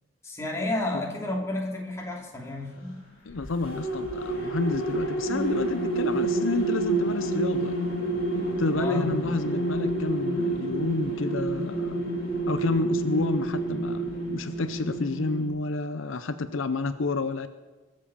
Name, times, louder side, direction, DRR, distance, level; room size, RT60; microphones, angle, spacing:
voice 1, 0.2-3.0 8.7-9.2, left 2 dB, 15° left, -1 dB, 2.6 m, -31 dB
voice 2, 3.3-7.8 8.6-12.0 12.5-17.5, left 3 dB, 70° left, 11 dB, 0.7 m, -30 dB
sound 1, 3.3-15.5, right 2 dB, 45° left, 3.5 m, -29 dB
21.5 x 7.6 x 6.9 m, 1.2 s
head